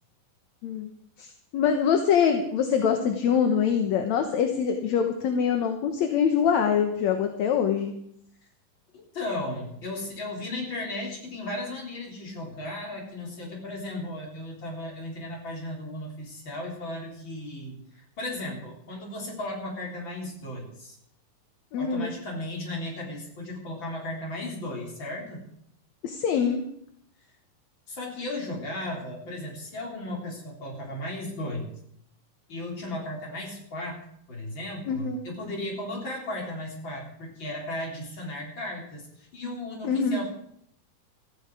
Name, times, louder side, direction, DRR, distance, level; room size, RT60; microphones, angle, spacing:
voice 1, 1.5-7.9 21.7-22.1 26.0-26.6 34.9-35.2 39.8-40.2, left 7 dB, 65° left, 5 dB, 2.2 m, -24 dB
voice 2, 8.9-21.0 21.8-25.4 27.9-31.7 32.5-40.3, left 1 dB, 35° left, -1 dB, 4.5 m, -35 dB
16.0 x 15.0 x 4.9 m, 0.70 s
omnidirectional pair, 3.9 m